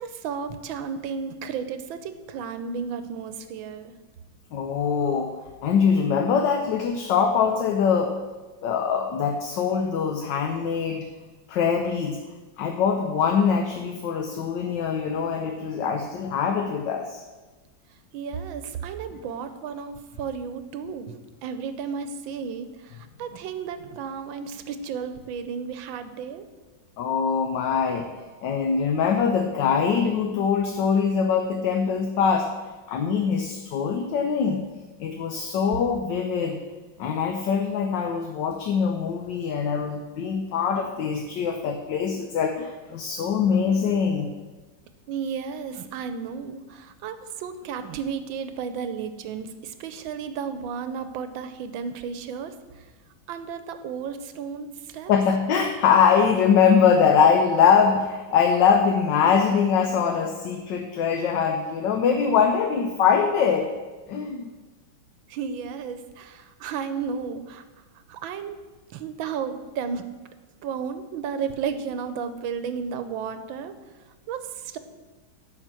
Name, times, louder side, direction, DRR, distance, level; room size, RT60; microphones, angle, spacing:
voice 1, 0.0-3.9 18.1-21.1 21.4-26.5 45.1-52.8 53.3-55.1 65.3-67.6 68.1-68.6 68.9-70.0 70.6-73.7 74.3-74.8, right 6 dB, 80° right, 10 dB, 1.4 m, -33 dB
voice 2, 4.5-5.3 5.6-8.2 8.6-11.1 11.5-12.2 12.6-17.2 27.0-28.1 28.4-32.5 32.9-34.6 35.0-36.6 37.0-44.3 55.1-63.7 64.1-64.5, left 6 dB, 70° left, 4 dB, 1.3 m, -23 dB
10.5 x 4.6 x 7.5 m, 1.3 s
omnidirectional pair, 2.2 m